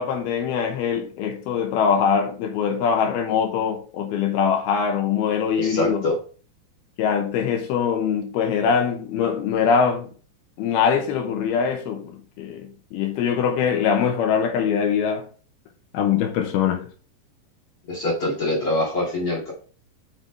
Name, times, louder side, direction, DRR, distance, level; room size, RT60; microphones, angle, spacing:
voice 1, 0.0-6.0 7.0-10.1 10.6-15.3 15.9-16.9, left 7 dB, 75° left, 2.5 m, -23 dB
voice 2, 5.6-6.2 17.9-19.5, left 1 dB, 40° left, 2.3 m, -24 dB
7.8 x 6.2 x 3.3 m
omnidirectional pair, 5.2 m